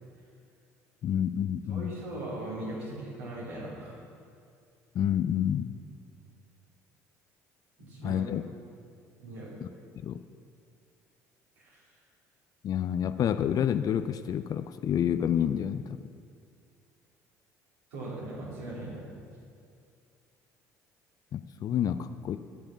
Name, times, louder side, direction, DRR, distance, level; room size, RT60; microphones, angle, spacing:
voice 1, 1.0-1.9 4.9-5.8 8.0-8.4 9.6-9.7 10.0-10.2 12.6-16.0 21.3-22.4, left 9 dB, 50° left, 11 dB, 0.5 m, -28 dB
voice 2, 1.7-4.0 7.8-8.2 9.2-9.5 11.6-11.8 17.9-19.1, right 1 dB, 80° right, -6 dB, 3.3 m, -39 dB
14.0 x 6.7 x 5.8 m, 2.3 s
hypercardioid pair, 60°, 8 cm